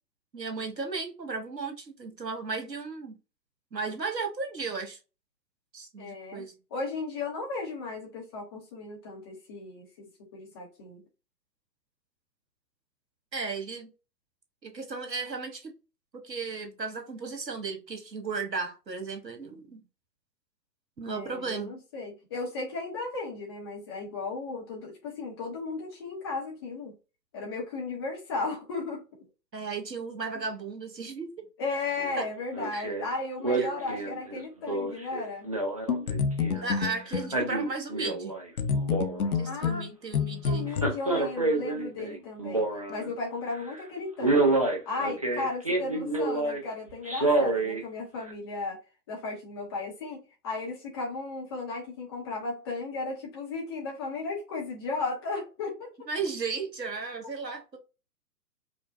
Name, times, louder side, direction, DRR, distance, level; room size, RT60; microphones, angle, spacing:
voice 1, 0.3-3.2 3.7-5.0 5.7-6.5 13.3-13.9 14.6-15.7 16.2-19.8 21.0-21.7 29.5-31.5 32.2-32.3 32.7-32.8 33.6-33.9 36.5-38.4 39.4-40.7 56.1-57.8, right 4 dB, 80° right, 1.3 m, -35 dB
voice 2, 6.0-11.0 21.1-27.0 27.3-29.0 31.6-35.5 39.5-39.8 40.4-44.6 44.9-48.8 49.1-50.2 50.4-55.9, left 3 dB, 15° left, 0.7 m, -35 dB
Male speech man speaking, 32.0-32.2 32.5-33.0 33.4-36.7 37.1-38.5 38.7-39.5 40.7-43.1 43.5-43.8 44.2-46.6 47.1-47.8 48.3-48.4, right 2 dB, 25° right, 0.4 m, -28 dB
sound 1, 35.9-37.4 38.6-40.9, left 6 dB, 60° left, 0.7 m, -28 dB
5.0 x 2.1 x 2.5 m
figure-of-eight pair, 125°, 49 cm